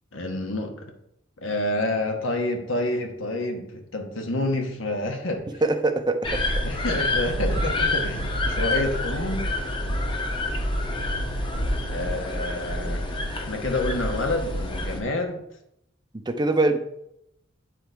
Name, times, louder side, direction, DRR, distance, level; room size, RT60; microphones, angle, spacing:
voice 1, 0.1-0.9 1.4-5.4 6.6-9.5 11.9-13.0 13.3-15.4, left 2 dB, 85° left, 3 dB, 1.3 m, -28 dB
voice 2, 5.6-6.4 16.3-16.8, right 2 dB, 20° right, 7 dB, 0.6 m, -22 dB
sound 1, 6.2-15.0, left 1 dB, 25° left, 1.0 m, -27 dB
9.1 x 4.1 x 4.6 m, 0.79 s
head